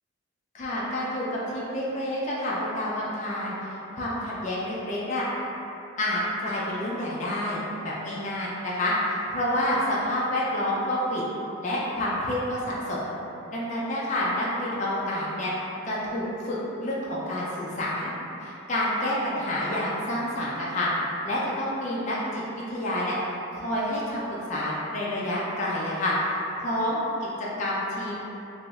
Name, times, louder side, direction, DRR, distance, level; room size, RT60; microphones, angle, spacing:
voice 1, 0.5-5.2 6.0-11.2 11.6-13.2 13.5-15.5 15.9-18.1 18.4-20.9 21.2-23.2 23.5-27.3 27.6-28.2, left 1 dB, 35° left, -7 dB, 0.4 m, -28 dB
2.9 x 2.0 x 3.4 m, 3.0 s
head